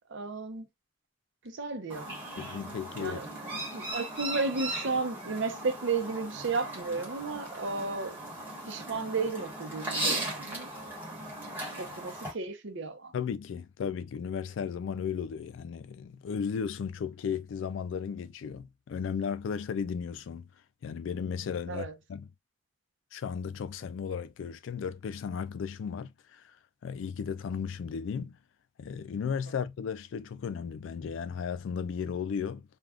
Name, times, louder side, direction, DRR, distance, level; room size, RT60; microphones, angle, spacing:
voice 1, 0.1-0.7 1.4-2.2 2.6-3.3 3.7-8.2 8.7-10.7 11.8-13.1 21.7-21.9, right 4 dB, 70° right, 0.7 m, -33 dB
Chirp tweet, 1.9-12.3, right 1 dB, 10° right, 1.4 m, -38 dB
voice 2, 2.4-3.2 13.1-20.5 20.8-22.3 23.1-26.4 26.8-28.4 28.8-32.6, left 6 dB, 70° left, 0.3 m, -35 dB
3.4 x 2.3 x 2.3 m
head